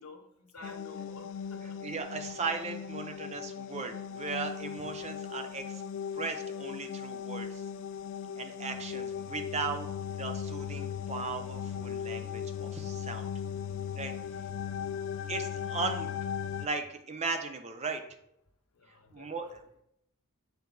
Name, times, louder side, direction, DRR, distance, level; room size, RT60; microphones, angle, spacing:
voice 1, 0.0-1.8 18.8-19.5, left 3 dB, 75° left, 4 dB, 1.0 m, -51 dB
sound 1, 0.6-16.7, left 8 dB, 55° left, 0.3 m, -38 dB
voice 2, 1.8-5.8 6.1-7.6 8.4-9.9 10.2-13.3 14.0-14.1 15.3-16.2 16.6-18.0 19.1-19.8, right 4 dB, 30° right, 6 dB, 0.6 m, -37 dB
6.9 x 4.6 x 3.9 m, 0.77 s
head